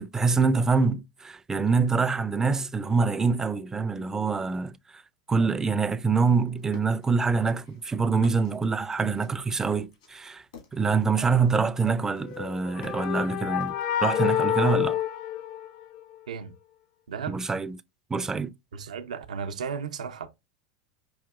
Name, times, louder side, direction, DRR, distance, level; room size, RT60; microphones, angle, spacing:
voice 1, 0.0-4.8 5.3-10.4 10.7-13.8 14.0-15.0 17.3-17.8 18.1-18.5, right 4 dB, 15° right, 0.3 m, -25 dB
sound 1, 6.2-7.1 7.5-11.7 12.0-13.2 13.6-14.1, left 5 dB, 75° left, 1.8 m, -47 dB
sound 2, 12.2-16.1, left 11 dB, 50° left, 0.4 m, -28 dB
voice 2, 18.7-20.3, right 6 dB, 85° right, 0.5 m, -34 dB
4.9 x 2.8 x 2.3 m
hypercardioid pair, 105°, 4 cm